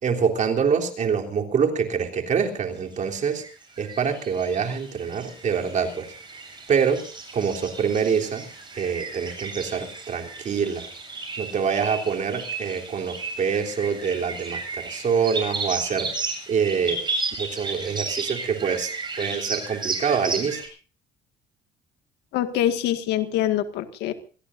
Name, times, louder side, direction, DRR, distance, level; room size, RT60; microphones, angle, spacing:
voice 1, 0.0-3.4 3.8-6.1 6.7-7.0 7.3-8.5 8.7-10.9 11.4-16.2 16.5-17.0 17.4-20.6, right 6 dB, 45° right, 2 dB, 3.5 m, -25 dB
sound 1, 2.9-20.7, right 3 dB, 25° right, 7.9 m, -34 dB
voice 2, 22.3-24.1, left 12 dB, 85° left, 9 dB, 1.9 m, -24 dB
25.5 x 17.5 x 2.6 m, 0.38 s
cardioid pair, 110°, 17 cm